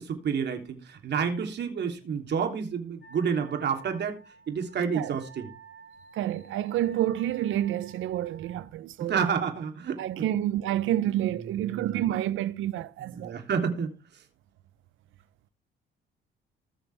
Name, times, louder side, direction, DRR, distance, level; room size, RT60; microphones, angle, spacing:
voice 1, 0.0-4.2 4.5-5.5 9.1-10.3 10.9-12.0 13.2-13.9, right 6 dB, 60° right, 3.3 m, -30 dB
Wind instrument woodwind instrument, 3.0-8.6, right 4 dB, 65° left, 6.3 m, -51 dB
voice 2, 6.1-9.4 10.0-13.4, right 12 dB, 85° right, 0.9 m, -29 dB
20.0 x 7.0 x 3.6 m
cardioid pair, 90°, 20 cm